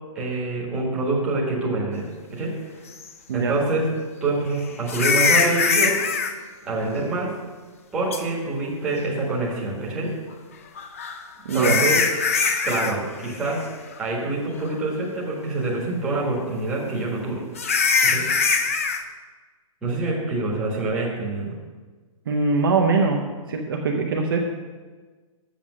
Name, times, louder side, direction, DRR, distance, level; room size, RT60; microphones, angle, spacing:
voice 1, 0.1-2.5 3.3-3.9 4.2-5.9 6.6-7.3 7.9-10.1 11.5-12.0 12.6-13.6 14.0-17.4 18.0-18.2 19.8-21.5, right 2 dB, 5° right, -6 dB, 1.4 m, -26 dB
sound 1, 3.0-3.1 4.9-6.3 8.1-8.2 10.8-12.9 13.2-13.6 14.0-14.1 14.7-14.8 17.6-19.0, left 5 dB, 25° left, 0.4 m, -22 dB
voice 2, 11.4-11.8 22.3-23.2 23.5-24.4, right 4 dB, 40° right, 1 dB, 0.8 m, -22 dB
7.6 x 7.0 x 6.1 m, 1.4 s
hypercardioid pair, 180°, 18 cm